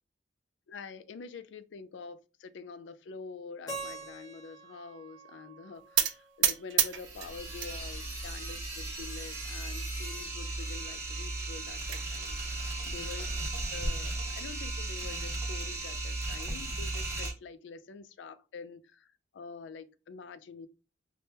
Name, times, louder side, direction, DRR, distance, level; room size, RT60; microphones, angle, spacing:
voice 1, 0.7-13.2 13.7-20.7, left 5 dB, 75° left, 0.3 m, -46 dB
Keyboard (musical), 3.7-6.6, right 2 dB, 20° left, 0.9 m, -45 dB
sound 1, 6.0-7.7 8.1-8.8 9.3-9.4 9.7-9.8 10.2-10.3 11.4-12.0, right 11 dB, 75° right, 0.4 m, -30 dB
sound 2, 7.0-17.3, right 2 dB, 15° right, 0.7 m, -36 dB
3.4 x 2.1 x 2.7 m
head